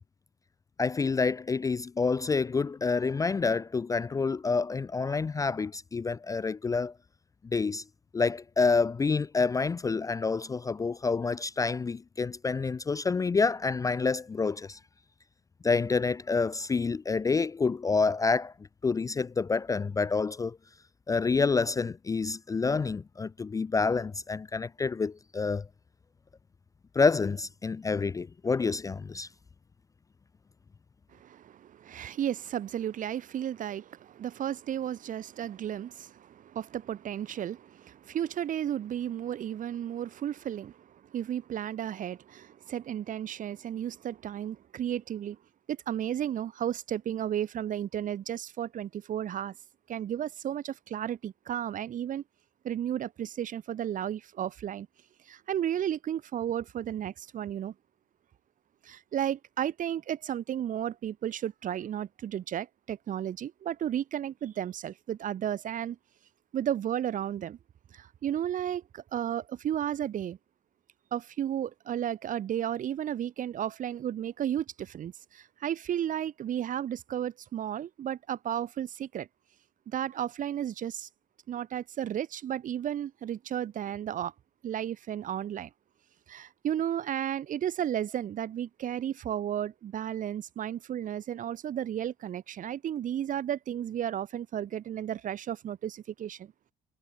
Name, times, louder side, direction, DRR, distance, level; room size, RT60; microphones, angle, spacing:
voice 1, 0.8-6.9 7.5-7.8 8.1-14.8 15.6-18.5 18.8-20.6 21.1-25.7 27.0-29.3, left 4 dB, 20° left, 0.4 m, -28 dB
voice 2, 31.1-45.4 45.7-49.5 49.9-52.2 52.6-54.9 55.3-57.7 58.8-66.0 66.5-67.6 67.9-70.4 71.1-79.3 79.9-81.1 81.5-84.3 84.6-85.7 86.3-96.5, right 10 dB, 50° right, 1.4 m, -33 dB
cardioid pair, 110°, 17 cm